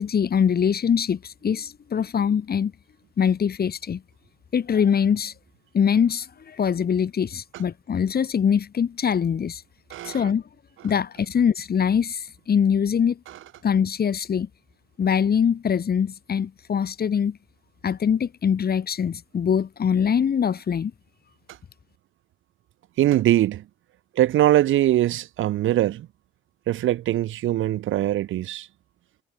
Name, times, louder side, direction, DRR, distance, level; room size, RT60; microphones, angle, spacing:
voice 1, 0.0-2.7 3.2-4.0 4.5-5.3 5.7-9.6 10.0-10.4 10.8-13.2 13.6-14.5 15.0-17.4 17.8-20.9, left 7 dB, 50° left, 7.0 m, -23 dB
voice 2, 9.9-10.3 23.0-23.6 24.2-26.1 26.7-28.7, right 13 dB, 80° right, 2.5 m, -22 dB
cardioid pair, 90°, 20 cm